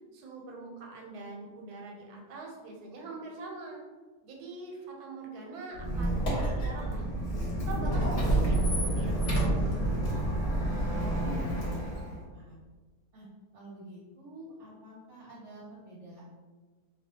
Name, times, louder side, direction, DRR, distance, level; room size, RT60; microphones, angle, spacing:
voice 1, 0.1-3.8 4.2-7.1 7.7-10.3, right 3 dB, 85° right, 0 dB, 1.1 m, -43 dB
Squeak, 5.7-12.2, right 1 dB, 55° left, 0.8 m, -29 dB
voice 2, 10.8-12.0 12.3-12.6 13.1-13.3 13.5-16.3, right 1 dB, 65° right, -6 dB, 0.8 m, -48 dB
2.3 x 2.2 x 2.7 m, 1.4 s
omnidirectional pair, 1.6 m